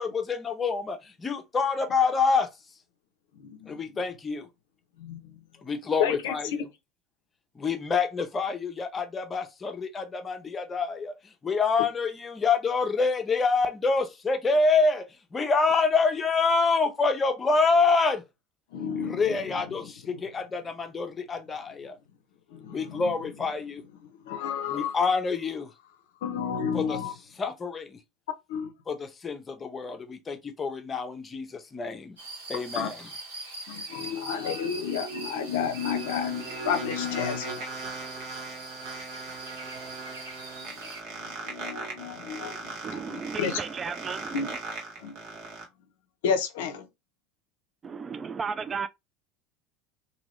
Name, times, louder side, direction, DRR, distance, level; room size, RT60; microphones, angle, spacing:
voice 1, 0.0-2.5 3.7-4.5 5.6-6.7 7.6-11.1 11.4-18.2 19.0-22.0 22.7-23.8 24.7-25.7 26.7-27.0 27.4-28.0 28.9-32.1 32.5-33.1, left 4 dB, 25° left, 0.7 m, -27 dB
voice 2, 3.4-3.8 5.0-5.2 6.0-6.3 18.7-19.4 22.5-23.0 24.3-25.0 26.2-27.1 28.5-28.7 32.5-32.9 33.7-37.6 40.6-40.8 41.1-43.6 44.3-44.5 45.0-45.1 46.2-46.9, left 7 dB, 70° left, 0.5 m, -31 dB
sound 1, 32.2-41.0, right 2 dB, 85° right, 1.1 m, -42 dB
sound 2, 35.2-45.6, right 3 dB, 60° right, 1.1 m, -39 dB
voice 3, 42.8-44.6 47.8-48.9, right 5 dB, 30° right, 0.3 m, -34 dB
2.9 x 2.7 x 3.0 m
hypercardioid pair, 75°, 0 cm